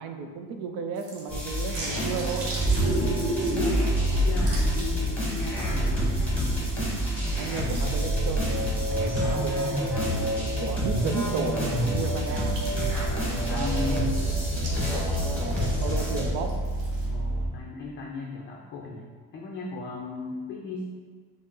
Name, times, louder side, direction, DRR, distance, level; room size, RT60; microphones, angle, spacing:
voice 1, 0.0-2.6 7.4-8.5 8.9-9.9 10.6-11.6 11.9-12.6 13.5-14.1 14.9-16.5, right 5 dB, 80° right, 5 dB, 0.5 m, -34 dB
sound 1, 0.9-9.5 10.0-10.1 11.8-17.1, right 2 dB, 65° right, 1.1 m, -44 dB
sound 2, 1.3-16.3, equal, 5° left, 1.0 m, -29 dB
Vehicle, 2.0-17.5, right 1 dB, 15° right, 1.2 m, -30 dB
voice 2, 3.3-3.8 4.1-6.0 8.9-9.3 11.8-12.1 13.5-14.4 17.1-19.1 19.3-21.0, left 4 dB, 35° left, -2 dB, 0.4 m, -36 dB
5.0 x 2.0 x 3.7 m, 1.5 s
cardioid pair, 140°, 36 cm